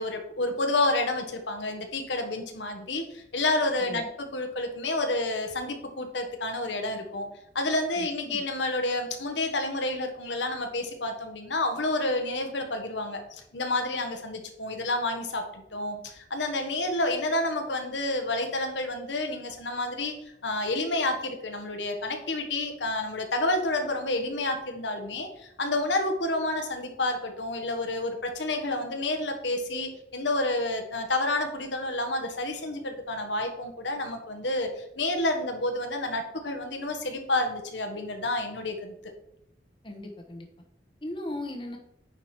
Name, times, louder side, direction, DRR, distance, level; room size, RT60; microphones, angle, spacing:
voice 1, 0.0-7.3 7.5-20.1 20.4-34.7 35.0-38.9, left 2 dB, 80° left, 4 dB, 1.3 m, -29 dB
voice 2, 8.0-8.4 39.8-40.5 41.0-41.8, left 1 dB, 25° left, 3 dB, 1.0 m, -38 dB
9.7 x 5.0 x 4.4 m, 0.78 s
head